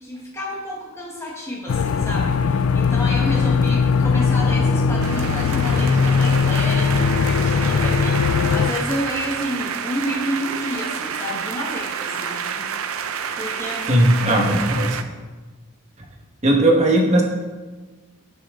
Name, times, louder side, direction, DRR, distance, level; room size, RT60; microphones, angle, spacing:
voice 1, 0.0-13.0 13.4-14.5, equal, 15° left, -4 dB, 1.4 m, -30 dB
sound 1, 1.7-8.7, left 5 dB, 85° left, 0.4 m, -19 dB
sound 2, 5.0-15.0, right 7 dB, 80° right, 0.6 m, -29 dB
voice 2, 13.9-15.0 16.4-17.2, right 1 dB, 30° right, 0 dB, 1.4 m, -17 dB
12.5 x 6.0 x 3.7 m, 1.3 s
head